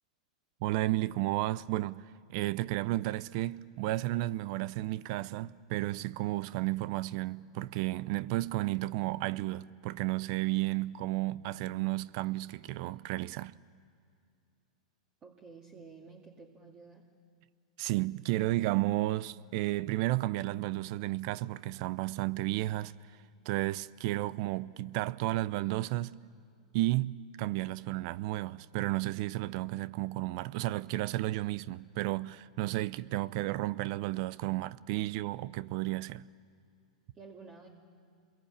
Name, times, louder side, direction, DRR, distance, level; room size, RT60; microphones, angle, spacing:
voice 1, 0.6-2.0 2.3-13.5 17.8-22.9 23.5-26.2 26.7-36.2, right 17 dB, 55° right, 0.6 m, -32 dB
voice 2, 15.2-17.1 37.1-37.7, right 4 dB, 25° right, 2.3 m, -51 dB
28.0 x 22.5 x 8.7 m
hypercardioid pair, 110°, 4 cm